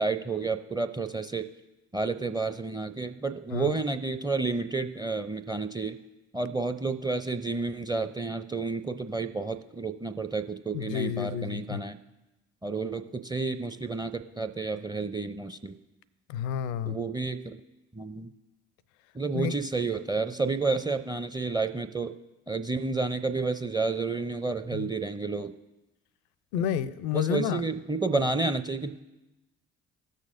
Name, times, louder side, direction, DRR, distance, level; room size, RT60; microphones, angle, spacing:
voice 1, 0.0-1.4 1.9-6.0 6.3-12.0 12.6-15.7 16.9-17.6 17.9-18.3 19.1-22.1 22.5-25.5 26.6-26.7 27.1-29.0, right 3 dB, 10° right, 8 dB, 0.5 m, -30 dB
voice 2, 10.7-11.8 16.3-17.0 19.3-19.5 24.7-24.9 26.5-27.6, left 9 dB, 75° left, 17 dB, 0.5 m, -30 dB
16.5 x 6.6 x 2.5 m, 1.0 s
figure-of-eight pair, 45°, 34 cm